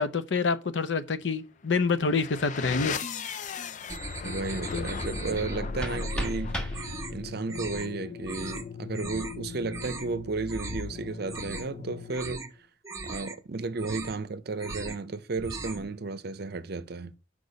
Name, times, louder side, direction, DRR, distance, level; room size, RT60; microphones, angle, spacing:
voice 1, 0.0-2.9 4.7-4.9, left 4 dB, 80° left, 0.6 m, -27 dB
sound 1, 1.7-12.5, left 5 dB, 40° left, 0.4 m, -38 dB
sound 2, 3.9-5.6 5.9-6.4 6.7-7.1 7.5-7.9 8.2-8.6 8.9-9.4 9.7-10.1 10.5-10.9 11.2-11.8 12.1-12.5 12.8-13.4 13.7-14.2 14.5-15.0 15.3-15.9, right 3 dB, 20° right, 0.8 m, -39 dB
voice 2, 4.2-12.7 13.0-17.1, right 3 dB, 60° right, 0.6 m, -34 dB
sound 3, 5.4-7.4, right 1 dB, 5° left, 1.3 m, -36 dB
6.7 x 5.0 x 3.9 m
head